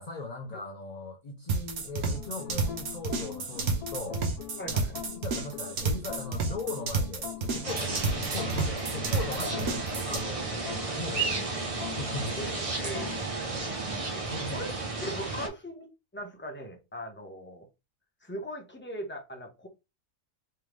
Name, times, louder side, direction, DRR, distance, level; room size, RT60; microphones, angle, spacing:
voice 1, 0.0-4.2 5.1-9.8 10.0-11.6 11.9-12.4 14.3-14.7 15.2-15.3, left 3 dB, 50° left, 0.5 m, -39 dB
sound 1, 1.5-10.2, right 4 dB, 75° right, 1.4 m, -31 dB
sound 2, 2.1-13.2, left 10 dB, 85° left, 1.2 m, -43 dB
voice 2, 4.6-5.0 9.3-9.7 12.4-13.1 14.1-14.7 15.0-17.7 18.2-19.7, equal, 10° left, 0.9 m, -39 dB
sound 3, 7.6-15.5, right 3 dB, 30° right, 0.7 m, -33 dB
3.6 x 3.3 x 3.2 m
omnidirectional pair, 1.6 m